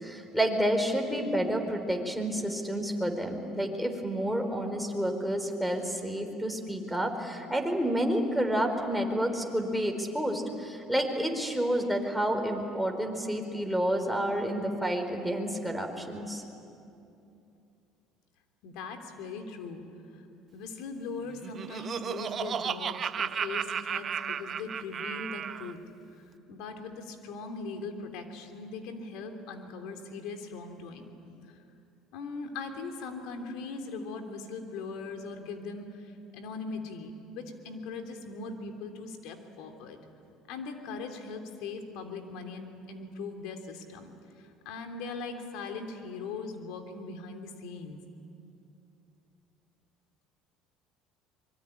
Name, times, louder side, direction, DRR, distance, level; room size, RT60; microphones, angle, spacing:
voice 1, 0.0-16.4, equal, ahead, 3 dB, 4.4 m, -29 dB
voice 2, 18.6-19.8 20.1-20.2 20.5-25.8 26.5-31.1 31.4-31.6 32.1-40.0 40.5-48.0, left 4 dB, 75° left, 5 dB, 3.3 m, -40 dB
Laughter, 21.3-25.7, right 7 dB, 45° right, 0.9 m, -34 dB
25.0 x 23.0 x 10.0 m, 2.7 s
supercardioid pair, 85°, 0 cm